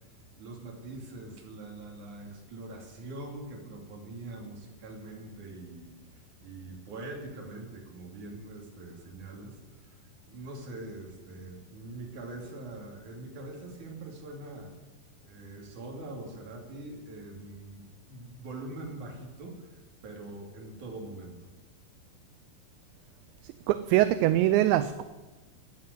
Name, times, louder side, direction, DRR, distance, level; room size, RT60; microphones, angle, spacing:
voice 1, 0.4-10.0 10.2-14.7 15.2-17.8 18.1-21.5, right 2 dB, 45° right, 0 dB, 3.7 m, -43 dB
voice 2, 23.7-25.0, right 14 dB, 85° right, 12 dB, 2.7 m, -23 dB
14.0 x 9.7 x 8.0 m, 1.2 s
omnidirectional pair, 5.4 m